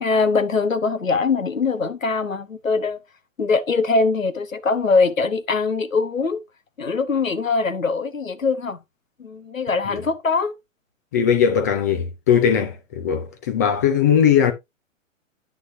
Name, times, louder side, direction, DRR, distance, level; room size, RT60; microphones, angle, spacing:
voice 1, 0.0-3.0 3.4-6.4 6.8-8.8 9.2-10.6, left 4 dB, 85° left, 1.2 m, -22 dB
voice 2, 11.1-14.5, left 8 dB, 15° left, 0.4 m, -19 dB
9.8 x 6.2 x 2.6 m
figure-of-eight pair, 115°, 39 cm